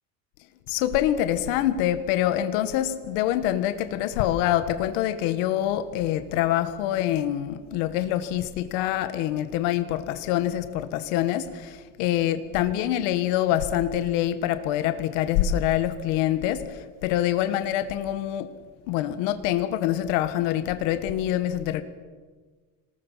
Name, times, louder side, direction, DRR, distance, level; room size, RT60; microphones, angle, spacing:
voice 1, 0.7-18.5 18.9-21.8, left 12 dB, 85° left, 11 dB, 1.8 m, -25 dB
26.5 x 20.5 x 7.5 m, 1.4 s
cardioid pair, 140°, 38 cm